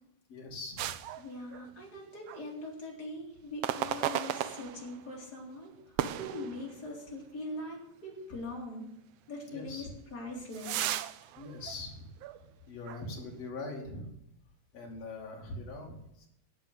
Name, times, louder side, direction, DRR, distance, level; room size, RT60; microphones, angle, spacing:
voice 1, 0.3-1.0 9.5-9.9 11.4-12.1 12.7-14.1 14.7-16.3, left 2 dB, 55° left, 0 dB, 3.8 m, -42 dB
sound 1, 0.8-2.0 2.3-2.5 3.6-5.1 6.0-7.1 7.6-7.7 8.4-8.5 9.8-12.5 12.8-13.0, right 12 dB, 85° right, 1.3 m, -36 dB
voice 2, 1.2-8.9 9.3-10.9, left 1 dB, 30° left, -2 dB, 4.2 m, -42 dB
12.0 x 7.7 x 9.6 m, 0.78 s
omnidirectional pair, 3.6 m